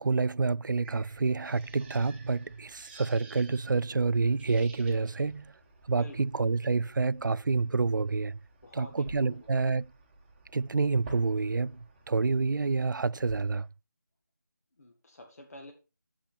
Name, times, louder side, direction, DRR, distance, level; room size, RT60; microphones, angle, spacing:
voice 1, 0.0-5.5 5.9-8.4 8.7-9.9 10.5-13.7, right 4 dB, 75° right, 0.4 m, -28 dB
sound 1, 0.8-13.7, right 2 dB, 10° right, 1.3 m, -53 dB
voice 2, 8.6-9.4 14.8-15.7, left 2 dB, 50° left, 1.6 m, -48 dB
8.8 x 7.4 x 4.2 m
figure-of-eight pair, 165°, 11 cm